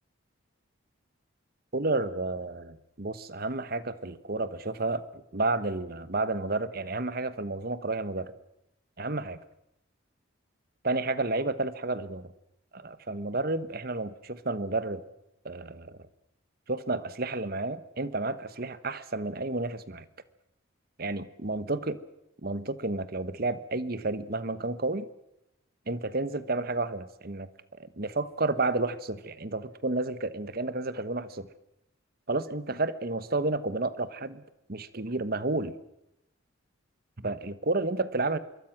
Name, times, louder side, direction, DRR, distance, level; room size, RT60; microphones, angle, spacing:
voice 1, 1.7-8.3 9.0-9.4 10.8-12.3 12.7-15.0 15.4-16.0 16.7-20.1 21.0-22.0 22.4-25.1 25.9-27.5 27.8-31.5 32.3-34.4 34.7-35.7 37.2-38.4, right 2 dB, 50° right, 14 dB, 1.1 m, -31 dB
25.5 x 22.5 x 6.0 m, 0.85 s
head